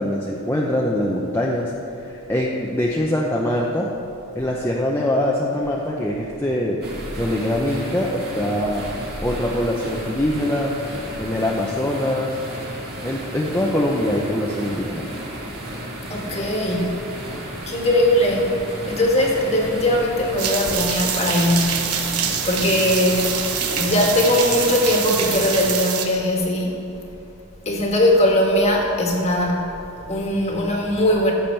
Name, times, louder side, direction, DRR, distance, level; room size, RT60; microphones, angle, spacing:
voice 1, 0.0-1.7 2.0-3.9 4.3-6.8 7.2-8.8 9.2-10.7 11.2-12.4 13.0-15.1, left 1 dB, 10° left, -3 dB, 0.7 m, -23 dB
sound 1, 6.8-25.7, right 1 dB, 45° right, 2.2 m, -34 dB
voice 2, 16.1-17.1 17.7-18.6 18.9-26.8 27.6-29.8 30.1-31.3, left 1 dB, 30° left, 0 dB, 1.6 m, -20 dB
Shower Sound, 20.4-26.1, right 7 dB, 80° right, 1.0 m, -25 dB
15.0 x 7.1 x 4.5 m, 2.9 s
head